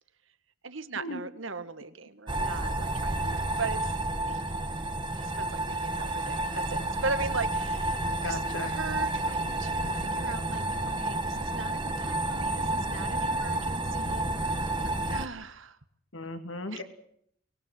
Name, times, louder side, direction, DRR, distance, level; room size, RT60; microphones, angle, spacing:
voice 1, 0.6-4.0 4.3-4.4 5.1-10.6 11.0-14.3 15.1-15.8 16.7-16.8, right 4 dB, 75° right, 12 dB, 1.7 m, -38 dB
sound 1, 2.3-15.3, right 2 dB, 25° right, 1.5 m, -30 dB
voice 2, 8.2-8.7 16.1-16.8, left 2 dB, 75° left, 7 dB, 2.8 m, -36 dB
24.0 x 20.5 x 7.6 m, 0.70 s
head